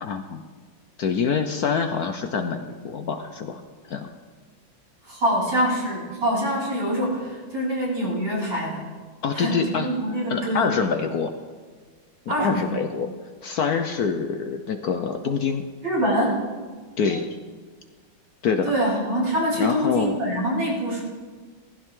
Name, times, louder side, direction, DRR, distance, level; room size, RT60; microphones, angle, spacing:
voice 1, 0.0-0.4 1.0-4.1 9.2-9.9 10.3-11.3 12.3-13.1 13.4-15.6 17.0-17.4 18.4-18.7 19.6-20.2, left 6 dB, 60° left, 6 dB, 1.1 m, -25 dB
voice 2, 5.0-8.8 9.3-10.7 12.3-12.7 15.8-16.4 18.6-21.0, equal, 60° right, -8 dB, 6.3 m, -25 dB
19.0 x 15.5 x 3.8 m, 1.5 s
omnidirectional pair, 2.1 m